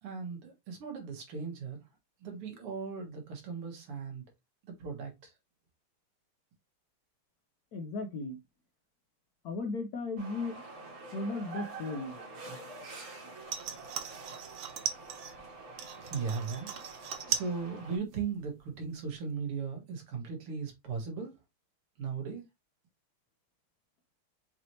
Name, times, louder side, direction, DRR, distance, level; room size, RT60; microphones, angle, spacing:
voice 1, 0.0-1.8 2.2-4.2 4.6-5.3 16.0-21.4 22.0-22.4, right 5 dB, 85° right, 2.5 m, -38 dB
voice 2, 7.7-8.4 9.4-10.6 11.1-12.2, left 3 dB, 75° left, 0.8 m, -36 dB
sound 1, 10.2-18.0, right 3 dB, 45° right, 1.9 m, -46 dB
sound 2, 13.4-15.4 15.8-17.6 17.9-18.4 18.8-18.9, right 8 dB, 65° right, 1.2 m, -38 dB
5.9 x 3.1 x 2.7 m
omnidirectional pair, 2.4 m